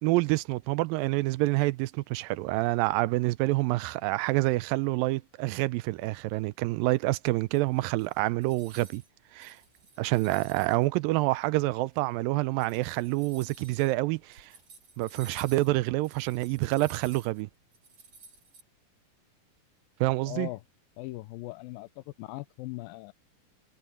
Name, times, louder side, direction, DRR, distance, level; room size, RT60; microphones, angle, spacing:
voice 1, 0.0-9.0 9.3-9.6 10.0-14.5 15.0-17.5 20.0-20.5, right 20 dB, 85° right, 2.2 m, -27 dB
sound 1, 7.5-9.1 9.4-10.9 11.5-11.6 12.4-18.6, right 4 dB, 40° right, 6.7 m, -52 dB
voice 2, 20.3-20.6 21.0-23.1, left 19 dB, 85° left, 2.4 m, -39 dB
omnidirectional pair, 4.1 m